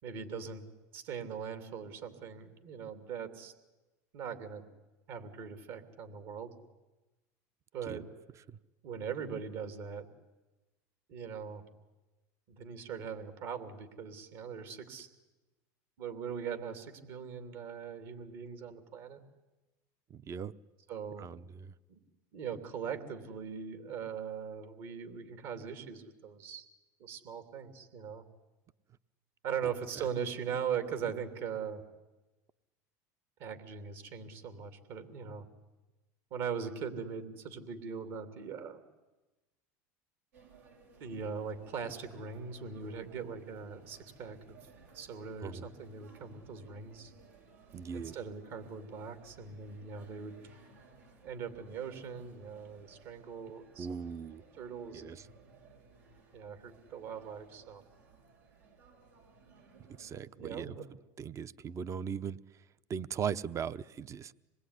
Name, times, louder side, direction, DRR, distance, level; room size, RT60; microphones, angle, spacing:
voice 1, 0.0-0.6 0.9-3.5 4.1-4.7 5.1-6.5 7.7-8.0 8.8-10.1 11.1-11.7 12.5-15.1 16.0-19.2 20.9-21.3 21.9-22.0 22.3-26.6 27.0-28.2 29.4-31.8 33.4-35.5 36.3-38.8 41.0-44.6 44.9-47.1 47.9-50.4 51.2-54.0 54.5-55.4 56.3-57.8 60.4-60.9, right 7 dB, 65° right, 9 dB, 3.1 m, -40 dB
voice 2, 20.1-20.5 21.2-21.7 45.4-45.7 47.7-48.2 53.8-54.4 54.9-55.3 60.0-60.8 61.2-62.4 62.9-64.3, right 7 dB, 35° right, 15 dB, 0.8 m, -39 dB
sound 1, 40.3-60.2, right 4 dB, 90° right, 6.1 m, -60 dB
26.0 x 20.5 x 9.9 m, 1.1 s
supercardioid pair, 100°, 9 cm